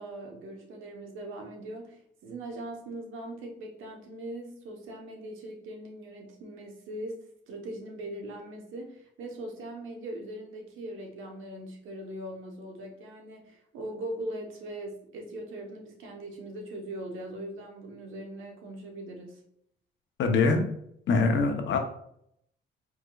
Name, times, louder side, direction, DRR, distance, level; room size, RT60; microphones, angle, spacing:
voice 1, 0.0-19.4, right 1 dB, 85° right, 2 dB, 1.0 m, -40 dB
voice 2, 20.2-20.6 21.1-21.8, left 4 dB, 70° left, 5 dB, 0.8 m, -23 dB
4.8 x 3.6 x 2.3 m, 0.71 s
cardioid pair, 90°, 20 cm